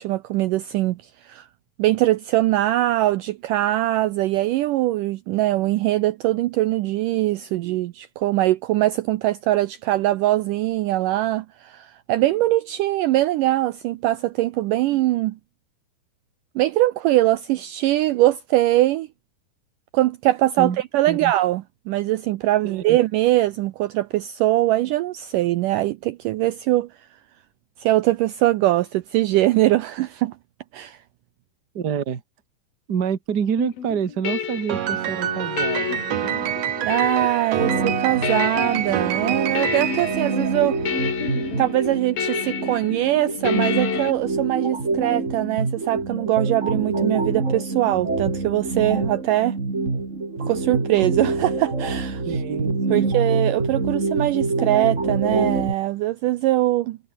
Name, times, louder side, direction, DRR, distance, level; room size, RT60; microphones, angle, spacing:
voice 1, 0.0-1.5 1.8-15.4 16.6-19.1 19.9-26.9 27.8-30.3 30.7-31.0 36.8-40.8 41.6-49.6 50.5-52.2 52.9-57.0, right 15 dB, 75° right, 2.0 m, -22 dB
voice 2, 22.6-23.0 31.7-32.2 32.9-36.0 52.2-53.2, right 7 dB, 40° right, 1.5 m, -27 dB
sound 1, 33.6-44.1, left 8 dB, 70° left, 4.7 m, -30 dB
Piano, 34.7-41.2, right 10 dB, 55° right, 2.2 m, -27 dB
sound 2, 37.6-55.7, right 3 dB, 20° right, 3.1 m, -26 dB
omnidirectional pair, 4.4 m